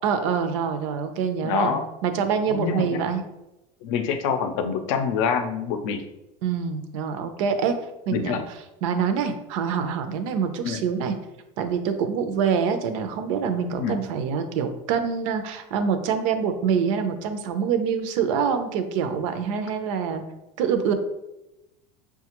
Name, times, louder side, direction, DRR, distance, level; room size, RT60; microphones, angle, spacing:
voice 1, 0.0-3.2 6.4-7.8 8.1-8.4 8.8-11.1 11.6-20.2 20.6-20.9, right 6 dB, 70° right, 8 dB, 0.5 m, -25 dB
voice 2, 1.4-1.8 2.5-3.0 3.8-6.0 8.1-8.4 10.6-10.8 13.7-14.0, left 6 dB, 60° left, 8 dB, 0.5 m, -26 dB
5.6 x 2.3 x 2.9 m, 0.94 s
cardioid pair, 170°, 17 cm